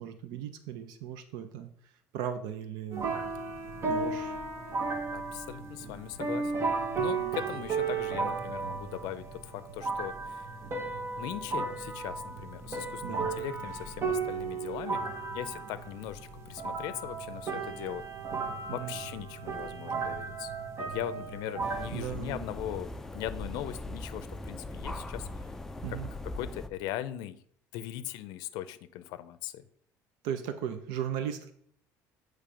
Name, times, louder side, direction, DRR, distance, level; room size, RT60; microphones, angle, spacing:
voice 1, 0.0-1.7 2.1-3.1 3.9-4.3 7.0-7.4 13.0-13.2 18.7-18.9 21.9-22.4 25.8-26.1 30.2-31.5, right 9 dB, 80° right, 9 dB, 0.6 m, -37 dB
sound 1, 2.9-21.9, right 4 dB, 40° right, 1.1 m, -34 dB
voice 2, 5.1-6.7 7.0-10.5 11.2-15.0 15.3-18.0 18.7-20.5 20.8-25.5 25.9-26.0 26.3-27.4 27.7-29.6, left 13 dB, 75° left, 13 dB, 0.5 m, -39 dB
sound 2, 21.6-26.7, left 1 dB, 5° left, 0.4 m, -40 dB
8.3 x 3.3 x 4.9 m, 0.62 s
cardioid pair, 130°, 7 cm